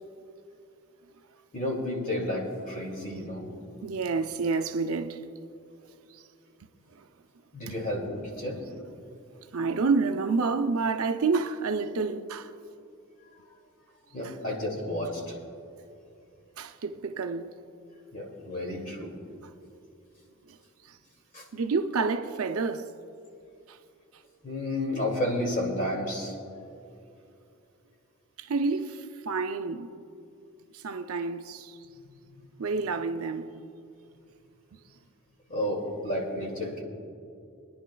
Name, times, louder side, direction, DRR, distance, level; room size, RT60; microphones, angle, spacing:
voice 1, 1.5-3.5 7.5-8.6 14.1-15.3 18.1-19.1 21.3-21.4 24.4-26.3 35.5-36.8, left 1 dB, 40° left, 2.4 m, -31 dB
voice 2, 3.8-5.2 7.7-7.8 9.5-12.5 16.6-17.5 21.5-22.9 28.4-29.9 30.7-31.8 32.6-33.6, right 4 dB, 70° right, 0.6 m, -29 dB
26.0 x 10.5 x 2.3 m
head